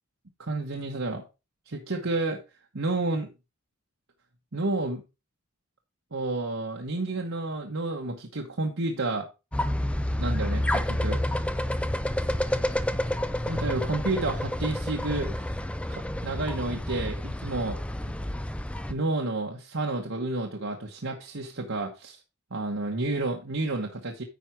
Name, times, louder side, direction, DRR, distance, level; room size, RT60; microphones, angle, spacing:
voice 1, 0.4-1.2 1.7-2.4 2.7-3.3 4.5-5.0 6.1-9.3 10.2-11.2 13.4-15.4 15.9-17.8 18.9-22.2 22.5-24.2, right 2 dB, 60° right, 0 dB, 1.1 m, -30 dB
sound 1, 9.5-18.9, left 1 dB, 5° left, 0.4 m, -29 dB
9.4 x 4.9 x 4.5 m, 0.28 s
head